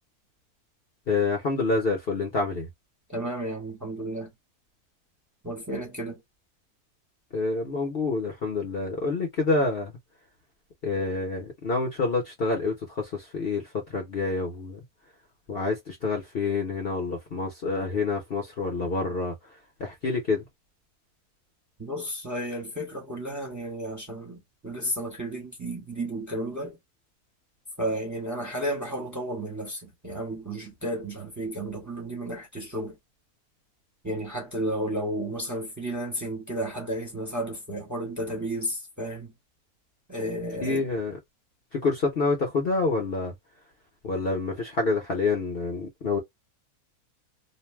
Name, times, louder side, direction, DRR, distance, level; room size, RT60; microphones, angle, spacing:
voice 1, 1.1-2.7 7.3-9.9 10.8-14.8 15.5-19.4 19.8-20.4 40.6-41.2 41.7-43.3 44.0-46.2, left 3 dB, 45° left, 0.9 m, -27 dB
voice 2, 3.1-4.3 5.4-6.2 21.8-24.4 24.6-26.8 27.8-32.9 34.0-39.3 40.1-40.8, right 1 dB, 15° right, 0.9 m, -32 dB
2.6 x 2.2 x 3.2 m
omnidirectional pair, 1.6 m